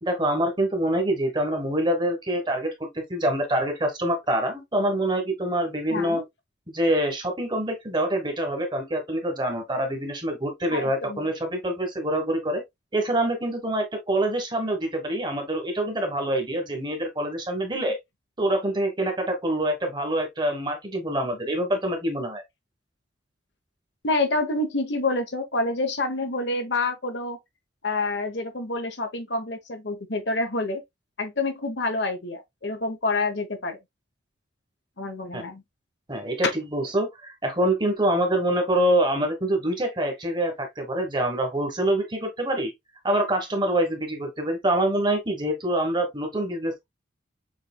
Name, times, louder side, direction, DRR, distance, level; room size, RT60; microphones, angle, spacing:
voice 1, 0.0-6.2 6.7-12.6 12.9-18.0 18.4-22.4 35.3-35.4 36.1-42.7 43.0-46.8, right 1 dB, 20° right, 1.3 m, -25 dB
voice 2, 5.9-6.2 10.7-11.3 24.0-27.4 27.8-30.8 31.2-33.8 35.0-35.6, left 2 dB, 55° left, 1.0 m, -27 dB
6.6 x 3.2 x 2.2 m
head